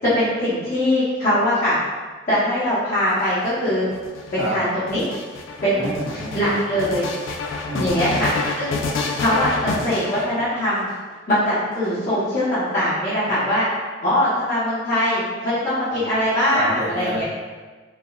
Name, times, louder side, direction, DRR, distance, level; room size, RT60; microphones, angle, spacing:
voice 1, 0.0-1.8 2.3-3.9 4.3-5.0 5.6-5.9 6.3-7.1 7.8-8.8 9.2-10.9 11.3-13.7 14.0-17.2, left 1 dB, 45° left, -14 dB, 0.9 m, -21 dB
sound 1, 3.0-10.9 11.7-12.6, left 3 dB, 90° left, 0.3 m, -29 dB
voice 2, 5.7-6.4 7.7-8.2 15.9-16.0 16.5-17.2, right 1 dB, 65° right, -9 dB, 0.9 m, -28 dB
3.4 x 2.1 x 2.3 m, 1.4 s
head